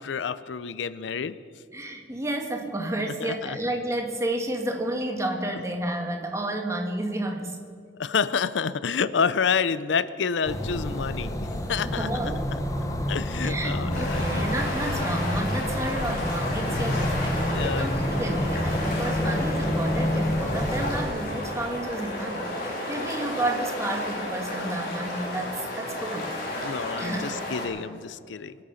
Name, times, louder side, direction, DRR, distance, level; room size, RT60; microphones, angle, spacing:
voice 1, 0.0-1.4 3.2-3.6 8.0-12.1 13.1-14.4 16.7-16.8 17.4-17.9 19.0-19.1 26.6-28.6, left 6 dB, 85° left, 16 dB, 0.5 m, -28 dB
voice 2, 1.7-7.6 11.2-11.4 11.8-12.5 13.4-26.7 27.0-27.3, right 1 dB, 15° right, 3 dB, 1.5 m, -31 dB
sound 1, 10.4-21.0, left 1 dB, 20° left, 1.2 m, -28 dB
sound 2, 13.9-27.7, left 1 dB, 50° left, 3.6 m, -33 dB
24.0 x 8.9 x 5.7 m, 2.3 s
head